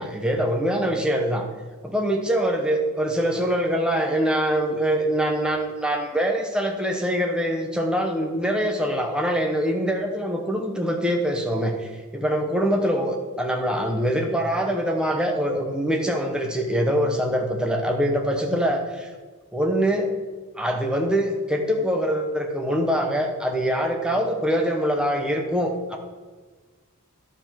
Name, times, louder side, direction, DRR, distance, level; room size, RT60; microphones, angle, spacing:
voice 1, 0.0-1.5 1.8-19.1 19.5-20.1 20.6-26.0, equal, 5° right, 1 dB, 1.1 m, -24 dB
11.5 x 5.3 x 5.9 m, 1.4 s
head